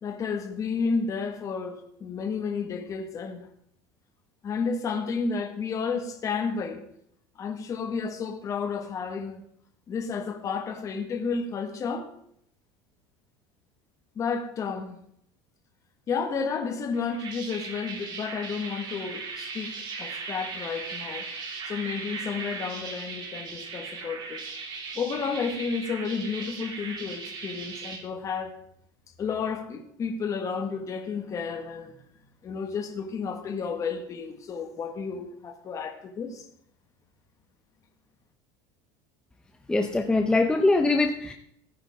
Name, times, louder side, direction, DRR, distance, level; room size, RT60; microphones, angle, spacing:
voice 1, 0.0-3.5 4.4-6.8 7.3-9.4 9.9-12.1 14.1-15.0 16.1-19.7 20.0-21.2 21.6-24.4 24.9-28.5 29.2-31.9 32.4-36.5, left 5 dB, 30° left, 1.6 m, -31 dB
sound 1, 16.9-28.0, right 4 dB, 40° right, 2.9 m, -38 dB
voice 2, 39.7-41.3, left 2 dB, 5° left, 0.7 m, -22 dB
16.5 x 9.6 x 3.6 m
cardioid pair, 150°, 11 cm